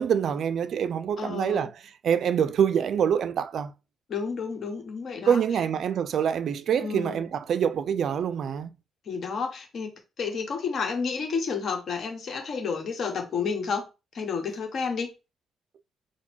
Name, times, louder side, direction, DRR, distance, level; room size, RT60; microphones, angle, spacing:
voice 1, 0.0-1.7 2.0-3.7 5.3-8.7, right 8 dB, 65° right, 0.3 m, -25 dB
voice 2, 1.2-1.7 4.1-5.4 6.8-7.3 9.1-9.9 10.2-13.8 14.1-15.1, left 5 dB, 55° left, 1.1 m, -30 dB
4.0 x 2.1 x 4.4 m
cardioid pair, 90°, 0 cm